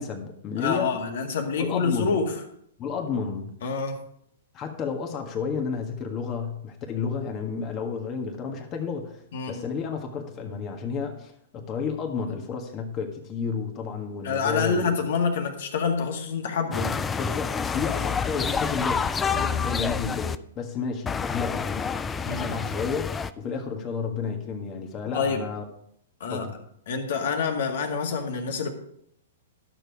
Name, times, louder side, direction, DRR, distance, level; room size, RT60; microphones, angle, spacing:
voice 1, 0.0-0.9 1.5-2.2 2.8-3.5 4.5-14.9 17.2-19.1 19.4-21.9 22.4-25.6 26.3-26.5, left 5 dB, 30° left, 3 dB, 1.6 m, -31 dB
voice 2, 0.6-2.3 3.6-4.0 9.3-9.7 14.2-17.0 19.3-19.7 22.3-22.6 25.1-25.5 26.2-26.5 26.9-28.7, left 5 dB, 65° left, 4 dB, 1.9 m, -27 dB
sound 1, 16.7-20.4 21.1-23.3, left 6 dB, 15° left, 0.4 m, -28 dB
12.0 x 6.9 x 4.7 m, 0.70 s
hypercardioid pair, 120°, 0 cm